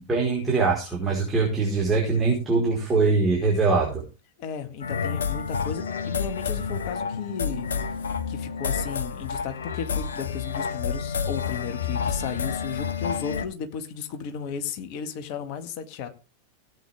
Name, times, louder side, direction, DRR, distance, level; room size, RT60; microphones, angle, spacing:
voice 1, 0.0-4.0, right 4 dB, 15° right, -3 dB, 4.7 m, -23 dB
voice 2, 4.4-7.7 8.3-16.1, left 7 dB, 45° left, 7 dB, 1.9 m, -34 dB
sound 1, 4.8-13.5, left 6 dB, 65° left, 1.0 m, -29 dB
17.5 x 8.5 x 3.6 m, 0.32 s
figure-of-eight pair, 90°, 0 cm